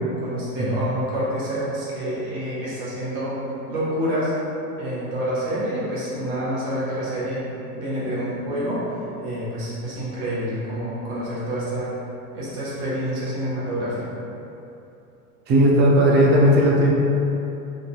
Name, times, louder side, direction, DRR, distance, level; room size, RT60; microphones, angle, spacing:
voice 1, 0.2-3.4 3.7-4.3 4.8-7.4 7.7-9.0 9.2-11.9 12.3-14.2, equal, 50° right, -8 dB, 1.4 m, -27 dB
voice 2, 15.5-16.9, equal, 25° right, -3 dB, 0.3 m, -16 dB
3.8 x 2.6 x 2.3 m, 2.9 s
hypercardioid pair, 100°, 47 cm